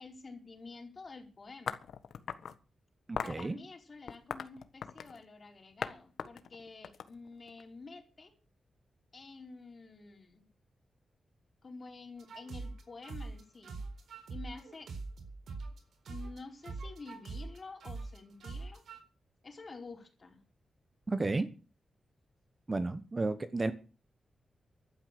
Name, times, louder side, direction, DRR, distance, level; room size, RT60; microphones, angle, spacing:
voice 1, 0.0-1.8 3.2-8.3 9.1-10.4 11.6-13.8 14.3-14.9 16.1-18.8 19.4-20.4, left 3 dB, 35° left, 4 dB, 4.4 m, -49 dB
Tumbling Rocks, 1.7-2.6 3.2-3.4 4.1-5.2 5.8-5.9 6.2-7.6, left 7 dB, 85° left, 1.4 m, -39 dB
voice 2, 3.1-3.6 21.1-21.5 22.7-23.7, right 3 dB, 25° right, 12 dB, 1.0 m, -32 dB
sound 1, 12.2-15.8 16.1-19.0, right 3 dB, 80° right, 4.1 m, -42 dB
15.0 x 12.0 x 6.7 m, 0.36 s
wide cardioid pair, 145°, 0 cm